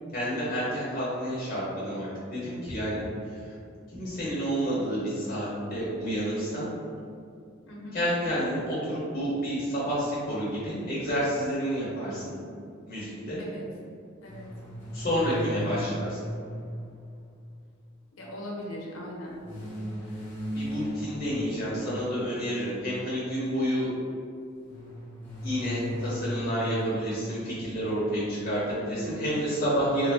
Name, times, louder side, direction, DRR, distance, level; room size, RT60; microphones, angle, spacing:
voice 1, 0.1-3.0 3.3-3.5 3.9-6.7 7.9-12.4 12.9-13.4 14.9-16.2 20.5-23.9 25.4-30.1, equal, 40° left, -8 dB, 0.9 m, -29 dB
voice 2, 7.7-8.0 13.4-13.6 14.2-14.5 18.2-19.4 29.0-29.4, left 1 dB, 85° left, -2 dB, 0.8 m, -39 dB
sound 1, 14.3-17.8 19.4-22.5 24.6-26.9, equal, 10° left, 1.0 m, -37 dB
3.7 x 2.6 x 3.4 m, 2.4 s
head